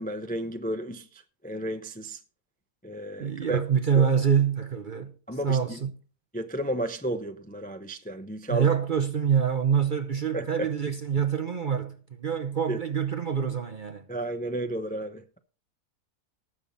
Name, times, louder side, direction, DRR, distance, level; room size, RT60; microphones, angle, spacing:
voice 1, 0.0-2.2 2.8-3.6 3.9-4.1 5.3-5.8 6.3-8.7 10.3-10.7 12.7-12.8 14.1-15.4, right 1 dB, 10° left, 0.4 m, -33 dB
voice 2, 3.2-5.1 5.4-5.9 8.5-14.0, right 7 dB, 45° right, 0.6 m, -26 dB
19.0 x 7.1 x 4.0 m
omnidirectional pair, 1.7 m